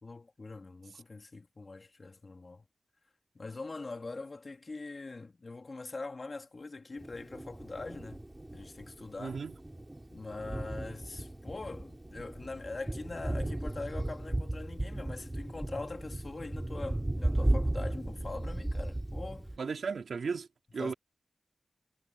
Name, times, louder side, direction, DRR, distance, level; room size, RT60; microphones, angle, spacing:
voice 1, 0.0-2.6 3.3-8.2 8.5-9.4 10.1-19.5 20.8-20.9, left 3 dB, 50° left, 2.4 m, -43 dB
Thunder, 7.0-19.6, right 1 dB, 20° right, 3.7 m, -35 dB
voice 2, 9.2-9.5 19.6-20.5 20.7-20.9, right 5 dB, 85° right, 2.8 m, -35 dB
cardioid pair, 45°, 0 cm